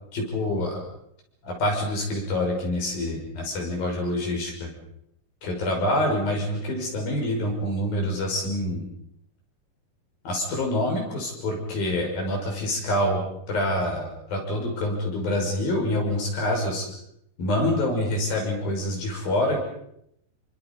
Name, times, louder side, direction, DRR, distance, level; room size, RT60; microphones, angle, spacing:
voice 1, 0.1-0.8 1.4-4.7 5.4-8.8 10.2-13.2 13.5-16.9 17.4-19.6, left 1 dB, 65° left, 0 dB, 7.8 m, -26 dB
28.0 x 25.5 x 5.5 m, 0.74 s
omnidirectional pair, 4.5 m